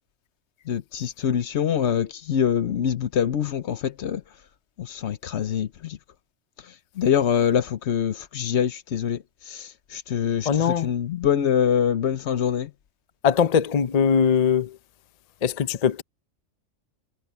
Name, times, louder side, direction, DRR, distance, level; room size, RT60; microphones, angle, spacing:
voice 1, 0.7-4.2 4.8-6.0 7.0-12.7, left 8 dB, 65° left, 1.0 m, -24 dB
voice 2, 10.5-10.9 13.2-14.7 15.4-16.0, left 7 dB, 45° left, 0.5 m, -21 dB
omnidirectional pair, 1.3 m